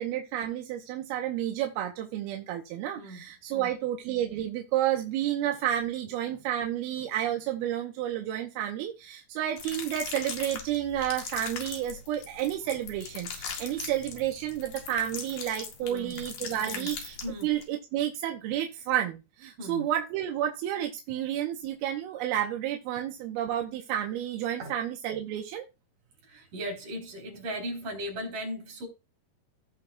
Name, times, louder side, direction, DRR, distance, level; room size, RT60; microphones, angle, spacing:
voice 1, 0.0-17.2 17.4-25.6, right 11 dB, 85° right, 2.8 m, -31 dB
sound 1, 9.6-17.6, left 6 dB, 65° left, 3.3 m, -40 dB
voice 2, 15.8-16.2 16.6-16.9 17.2-17.5 19.6-19.9 24.6-24.7 26.3-28.9, equal, 55° right, 5.2 m, -37 dB
17.0 x 5.9 x 2.3 m
omnidirectional pair, 4.5 m